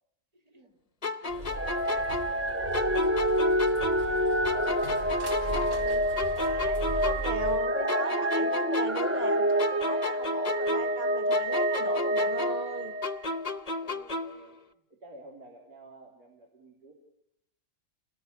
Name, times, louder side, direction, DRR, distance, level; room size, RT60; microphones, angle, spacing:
voice 1, 0.5-5.1 13.6-14.6 14.9-16.9, right 1 dB, 90° right, 4.0 m, -53 dB
sound 1, 1.0-4.2 4.4-7.6 7.9-11.0 11.3-14.5, left 3 dB, 30° left, 0.9 m, -34 dB
sound 2, 1.3-7.6, right 1 dB, 50° right, 4.6 m, -39 dB
sound 3, 1.6-13.5 14.1-14.2, equal, 10° right, 0.7 m, -28 dB
voice 2, 5.5-6.0 6.4-13.0, right 3 dB, 25° right, 1.3 m, -38 dB
29.0 x 18.5 x 8.3 m
omnidirectional pair, 1.6 m